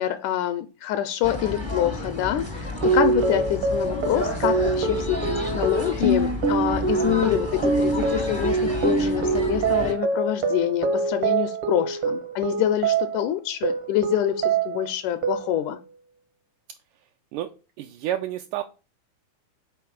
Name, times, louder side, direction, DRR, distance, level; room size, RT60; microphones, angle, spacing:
voice 1, 0.0-15.8, left 12 dB, 80° left, 9 dB, 1.9 m, -26 dB
sound 1, 1.2-9.9, left 2 dB, 40° right, 0.3 m, -31 dB
sound 2, 2.8-13.3 13.6-14.9 15.2-15.8, right 4 dB, 65° right, 1.4 m, -25 dB
voice 2, 17.8-18.6, right 12 dB, 80° right, 5 dB, 2.0 m, -29 dB
5.8 x 4.4 x 6.2 m, 0.32 s
omnidirectional pair, 3.8 m